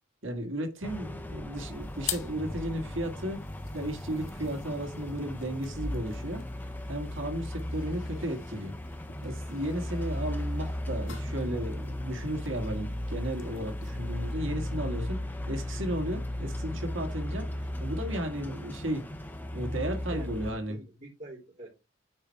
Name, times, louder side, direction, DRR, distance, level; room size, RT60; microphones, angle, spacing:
voice 1, 0.2-8.7 9.2-19.3 19.5-20.8, right 1 dB, 75° right, 1.9 m, -34 dB
sound 1, 0.8-20.5, left 1 dB, 10° left, 0.8 m, -36 dB
sound 2, 1.5-14.3, left 10 dB, 80° left, 1.8 m, -47 dB
voice 2, 20.1-21.7, right 1 dB, 40° right, 3.8 m, -47 dB
8.8 x 4.4 x 4.6 m
head